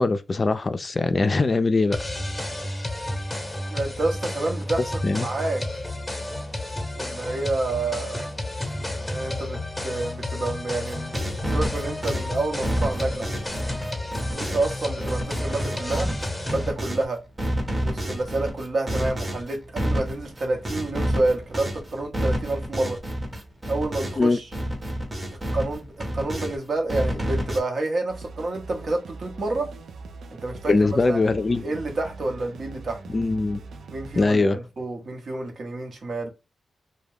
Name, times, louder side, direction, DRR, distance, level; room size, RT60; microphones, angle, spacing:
voice 1, 0.0-2.0 5.0-5.3 24.2-24.4 30.7-31.6 33.1-33.6 34.2-34.6, left 3 dB, 40° left, 0.3 m, -21 dB
sound 1, 1.9-16.7, left 1 dB, 10° left, 0.8 m, -31 dB
voice 2, 3.7-5.6 7.0-8.3 8.8-11.1 11.5-13.3 14.3-16.1 16.4-17.2 17.8-23.0 23.7-24.4 25.5-29.7 30.3-30.7 31.1-31.2 31.5-33.0 33.9-36.3, right 2 dB, 65° right, 0.8 m, -29 dB
sound 2, 10.9-17.0 17.4-24.3 24.5-26.6 26.9-27.6, equal, 30° right, 0.8 m, -29 dB
sound 3, 28.1-34.3, right 3 dB, 80° right, 0.4 m, -41 dB
2.3 x 2.1 x 3.3 m
cardioid pair, 55°, 0 cm